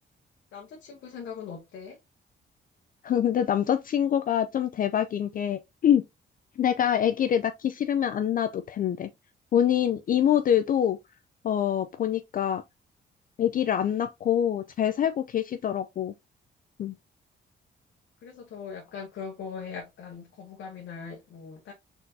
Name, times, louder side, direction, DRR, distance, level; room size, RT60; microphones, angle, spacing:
voice 1, 0.5-2.0 18.2-21.7, left 6 dB, 85° left, 0.9 m, -40 dB
voice 2, 3.0-6.0 6.6-9.1 9.5-11.0 11.4-12.6 13.4-16.1 16.8-16.9, left 9 dB, 45° left, 0.4 m, -25 dB
4.3 x 3.9 x 2.7 m
cardioid pair, 115°, 19 cm